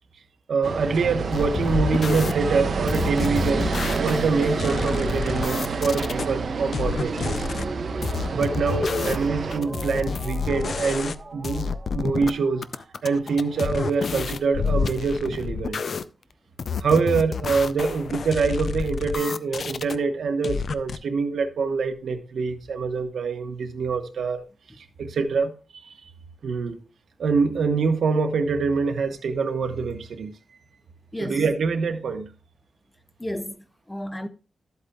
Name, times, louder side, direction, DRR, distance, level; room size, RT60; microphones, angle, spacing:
voice 1, 0.5-3.7 4.0-7.5 8.3-12.7 13.0-15.8 16.8-24.4 24.8-25.5 26.4-26.8 27.2-30.3 31.2-32.3, right 4 dB, 90° right, 1.2 m, -25 dB
sound 1, 0.6-9.6, right 4 dB, 60° right, 0.8 m, -29 dB
sound 2, 1.3-2.3 2.9-6.3 6.7-7.7 8.0-11.2 11.4-12.3 12.6-16.0 16.6-20.0 20.4-21.0, left 5 dB, 55° left, 0.4 m, -29 dB
sound 3, 1.7-13.5, right 3 dB, 35° right, 1.0 m, -36 dB
voice 2, 31.1-31.4 33.2-34.3, left 1 dB, 10° left, 0.6 m, -33 dB
13.0 x 8.2 x 2.4 m
wide cardioid pair, 170°, 0 cm